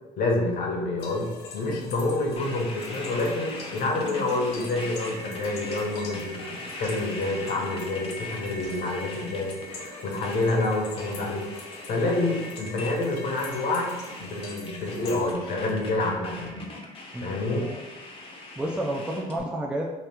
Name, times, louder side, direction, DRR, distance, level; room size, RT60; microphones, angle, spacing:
voice 1, 0.2-11.5 11.9-16.5 17.2-17.6, left 2 dB, 60° left, -1 dB, 0.9 m, -28 dB
sound 1, 1.0-15.3, left 4 dB, 85° left, 0.6 m, -45 dB
sound 2, 2.4-19.4, left 2 dB, 35° left, 0.6 m, -40 dB
sound 3, 4.4-18.6, left 1 dB, 55° right, 0.6 m, -46 dB
voice 2, 17.1-17.8 18.6-19.9, right 1 dB, 5° right, 0 dB, 0.3 m, -31 dB
2.9 x 2.3 x 3.4 m, 1.1 s
cardioid pair, 110°, 17 cm